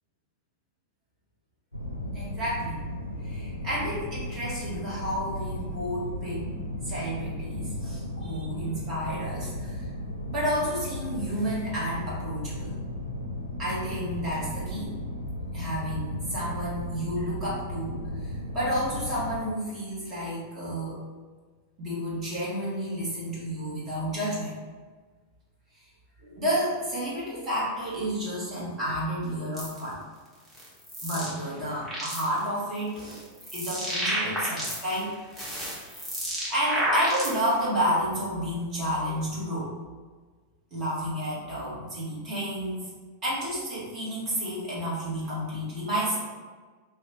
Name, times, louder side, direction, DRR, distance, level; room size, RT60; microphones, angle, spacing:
sound 1, 1.7-19.4, left 1 dB, 85° left, 0.4 m, -35 dB
voice 1, 2.1-2.8 3.2-9.8 10.3-12.7 13.6-14.9 15.5-21.0 21.8-24.5 26.2-30.0 31.0-33.2 33.5-35.1 35.9-36.1 36.5-39.7 40.7-42.9 43.2-46.2, equal, 30° right, -7 dB, 1.4 m, -31 dB
sound 2, 29.6-29.8 30.5-31.3 31.7-32.4 33.0-35.0 35.3-37.6, equal, 10° right, 1.0 m, -31 dB
2.7 x 2.3 x 3.6 m, 1.4 s
figure-of-eight pair, 90°, 0 cm